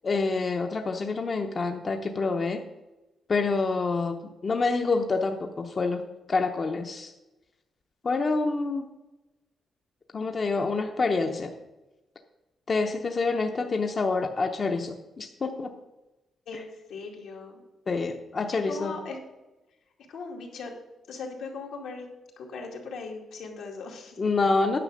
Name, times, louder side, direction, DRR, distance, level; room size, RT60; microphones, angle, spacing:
voice 1, 0.0-2.6 3.3-7.1 8.0-8.9 10.1-11.5 12.7-15.7 17.9-18.9 24.2-24.8, left 3 dB, 35° left, 4 dB, 0.7 m, -27 dB
voice 2, 16.5-17.6 18.5-19.2 20.1-20.7 21.1-22.1 22.4-24.2, left 4 dB, 85° left, -1 dB, 2.3 m, -39 dB
9.9 x 5.9 x 6.4 m, 1.0 s
cardioid pair, 130°, 0 cm